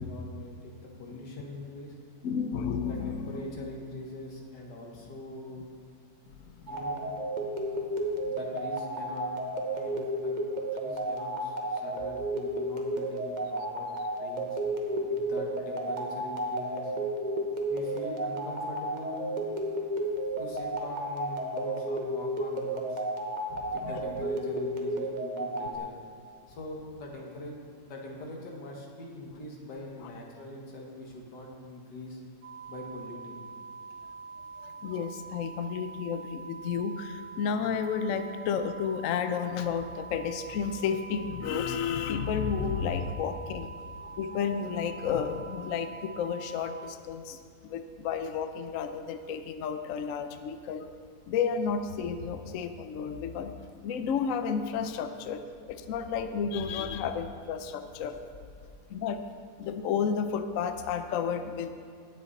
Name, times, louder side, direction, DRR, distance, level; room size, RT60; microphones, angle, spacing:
voice 1, 0.0-1.9 2.8-5.7 6.6-7.1 8.2-9.3 9.7-10.4 10.7-13.9 14.2-14.6 15.1-16.9 17.7-19.4 20.4-23.0 23.7-25.9 26.5-27.6 27.8-32.2 32.7-33.4, left 1 dB, 90° left, -1 dB, 2.3 m, -43 dB
voice 2, 2.2-3.4 6.4-6.7 7.7-7.8 23.5-23.9 34.6-43.7 44.0-50.9 51.3-53.5 53.8-55.4 55.7-58.1 58.9-59.2 59.6-61.8, left 6 dB, 65° left, 8 dB, 0.9 m, -32 dB
sound 1, 6.7-25.8, right 1 dB, 35° right, 0.9 m, -32 dB
sound 2, 32.4-46.9, right 4 dB, 65° right, 0.8 m, -45 dB
18.0 x 6.5 x 4.1 m, 2.4 s
omnidirectional pair, 1.8 m